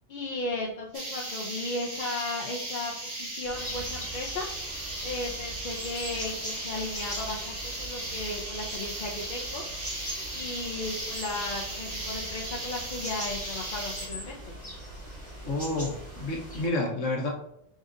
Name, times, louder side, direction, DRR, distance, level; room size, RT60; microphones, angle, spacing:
voice 1, 0.1-4.5 5.0-9.6 10.3-14.5, left 2 dB, 50° left, -3 dB, 0.6 m, -35 dB
sound 1, 0.9-14.1, right 1 dB, 45° right, 1.2 m, -37 dB
sound 2, 3.4-16.7, right 1 dB, 10° left, 1.6 m, -41 dB
voice 2, 15.4-17.3, left 2 dB, 80° left, 0 dB, 1.3 m, -29 dB
5.1 x 3.8 x 2.6 m, 0.76 s
omnidirectional pair, 1.3 m